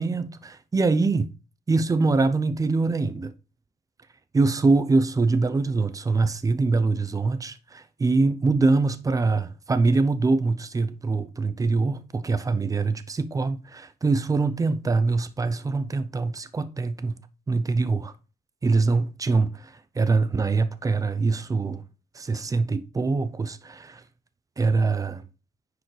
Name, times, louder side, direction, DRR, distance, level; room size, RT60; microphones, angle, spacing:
voice 1, 0.0-1.3 1.7-3.3 4.3-17.2 17.5-18.1 18.6-21.8 22.1-24.0 24.6-25.2, right 3 dB, 20° right, 0.7 m, -24 dB
9.9 x 4.8 x 3.3 m
cardioid pair, 110°, 17 cm